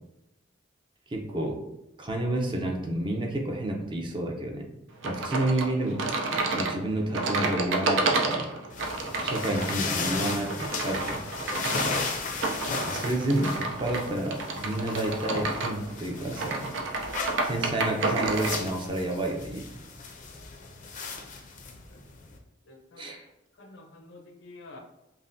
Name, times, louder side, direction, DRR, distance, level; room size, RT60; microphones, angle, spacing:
voice 1, 1.1-1.6 2.0-4.7 5.0-6.0 6.3-8.5 9.2-11.2 12.9-16.7 17.4-19.7 23.0-23.2, right 1 dB, 25° right, 1 dB, 0.5 m, -30 dB
sound 1, 5.0-18.6, right 3 dB, 80° right, 0.5 m, -30 dB
sound 2, 8.7-22.4, left 4 dB, 45° left, 0.5 m, -36 dB
voice 2, 9.0-9.3 21.7-22.2 22.6-23.1 23.5-24.8, left 2 dB, 75° left, 2 dB, 0.7 m, -50 dB
5.5 x 2.1 x 2.6 m, 0.91 s
head